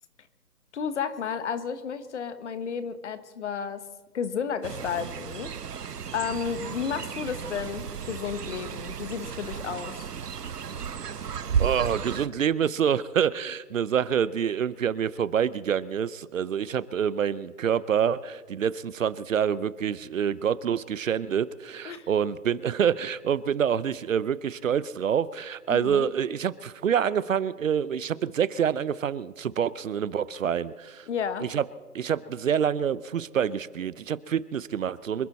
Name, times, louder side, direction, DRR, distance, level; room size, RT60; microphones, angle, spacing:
voice 1, 0.7-3.8 4.1-5.5 6.1-10.1 21.8-22.1 25.7-26.1 31.1-31.5, left 7 dB, 45° left, 12 dB, 1.4 m, -32 dB
Fowl, 4.6-12.3, right 7 dB, 80° right, 1.0 m, -33 dB
voice 2, 11.6-31.1 31.4-31.6 31.9-35.3, right 8 dB, 55° right, 18 dB, 0.7 m, -27 dB
26.0 x 11.5 x 4.2 m, 1.4 s
figure-of-eight pair, 140°, 47 cm